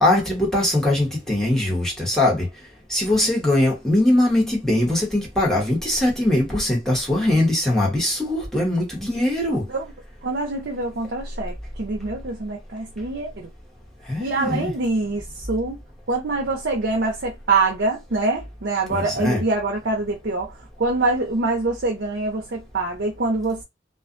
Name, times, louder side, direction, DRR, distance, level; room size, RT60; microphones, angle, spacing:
voice 1, 0.0-2.5 2.9-9.6 14.1-14.7 18.9-19.4, left 1 dB, 5° left, 1.1 m, -21 dB
voice 2, 10.2-13.5 14.2-15.8 16.1-20.5 20.8-23.6, right 3 dB, 70° right, 0.6 m, -24 dB
2.4 x 2.2 x 2.5 m
head